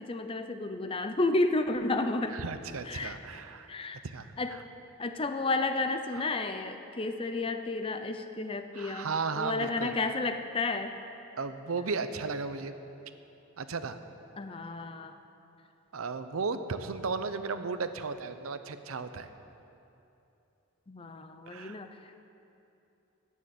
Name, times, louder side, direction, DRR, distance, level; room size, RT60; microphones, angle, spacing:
voice 1, 0.0-2.4 2.8-3.2 3.7-4.0 4.4-4.6 5.0-9.1 9.4-10.9 14.4-15.2 20.9-22.3, left 2 dB, 25° left, 8 dB, 0.5 m, -32 dB
voice 2, 2.3-3.7 4.0-4.6 8.7-9.9 11.4-12.7 13.6-14.0 15.9-19.3 21.5-21.8, right 4 dB, 80° right, 10 dB, 0.7 m, -35 dB
14.0 x 6.5 x 9.1 m, 2.8 s
head